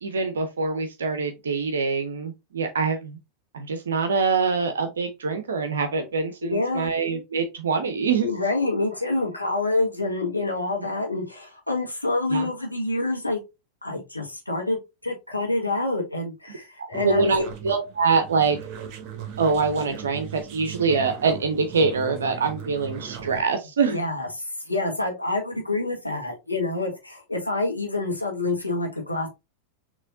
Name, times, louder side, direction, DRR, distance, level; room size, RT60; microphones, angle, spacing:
voice 1, 0.0-3.2 3.5-8.3 12.3-12.5 17.0-18.6 19.4-24.1, right 4 dB, 65° right, 0.7 m, -24 dB
voice 2, 6.4-6.9 8.2-13.4 13.8-17.5 23.9-29.3, left 2 dB, 85° left, 1.4 m, -27 dB
sound 1, 16.9-23.4, right 8 dB, 40° right, 1.2 m, -38 dB
6.3 x 3.1 x 2.5 m
figure-of-eight pair, 90°, 0 cm